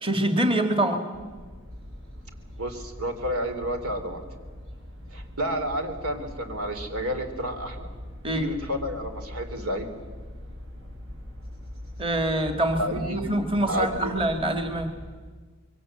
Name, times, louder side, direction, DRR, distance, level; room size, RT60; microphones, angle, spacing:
voice 1, 0.0-1.0 8.2-8.5 12.0-14.9, right 1 dB, 25° right, 6 dB, 1.8 m, -25 dB
sound 1, 1.1-15.2, left 1 dB, 70° right, 7.0 m, -42 dB
voice 2, 2.6-4.2 5.1-7.9 8.3-9.9 12.8-14.2, equal, 85° right, 6 dB, 3.2 m, -30 dB
25.5 x 23.0 x 7.6 m, 1.5 s
head